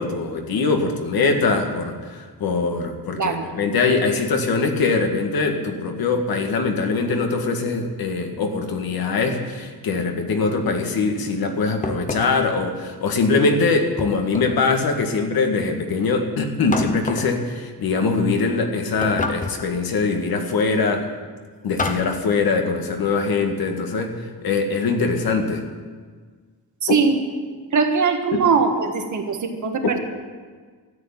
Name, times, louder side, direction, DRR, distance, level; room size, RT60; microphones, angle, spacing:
voice 1, 0.0-21.1 21.6-25.6 26.9-27.0 28.3-28.4, left 4 dB, 70° left, 4 dB, 1.9 m, -22 dB
sound 1, 11.8-12.5 14.0-14.7 16.7-17.4 19.0-19.7 21.8-22.2, left 3 dB, 20° left, 0.9 m, -28 dB
voice 2, 26.8-27.2 27.7-30.0, right 5 dB, 50° right, 5 dB, 1.6 m, -21 dB
13.0 x 8.3 x 9.9 m, 1.6 s
wide cardioid pair, 160°, 38 cm